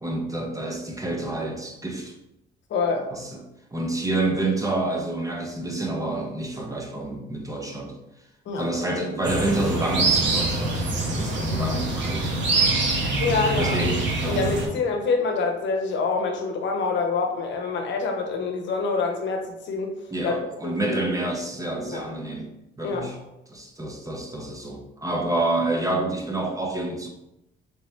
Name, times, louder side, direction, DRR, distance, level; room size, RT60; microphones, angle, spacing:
voice 1, 0.0-2.1 3.1-3.4 3.7-7.9 8.6-10.9 11.1-12.4 13.6-14.4 20.1-22.5 22.8-23.2 23.5-27.1, right 2 dB, 15° right, 1 dB, 0.6 m, -28 dB
voice 2, 2.7-3.1 8.5-8.8 13.2-13.8 14.3-19.9 20.2-21.0 21.9-22.0 22.8-23.1, left 4 dB, 70° left, 3 dB, 0.7 m, -26 dB
sound 1, 9.2-14.7, right 2 dB, 70° right, 0.9 m, -24 dB
3.3 x 3.1 x 3.1 m, 0.88 s
cardioid pair, 90°, 20 cm